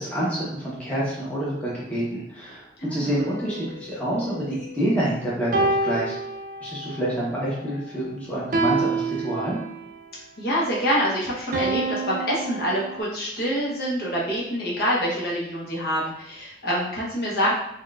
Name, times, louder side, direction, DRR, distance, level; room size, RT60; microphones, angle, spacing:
voice 1, 0.0-6.2 6.6-9.6, right 1 dB, 5° left, -8 dB, 0.8 m, -27 dB
voice 2, 2.8-3.1 10.4-17.5, equal, 55° left, -5 dB, 0.8 m, -26 dB
sound 1, 3.2-4.9 5.5-7.0 8.5-10.0 11.5-13.0, right 3 dB, 45° right, 0.4 m, -28 dB
4.3 x 2.2 x 2.3 m, 0.78 s
head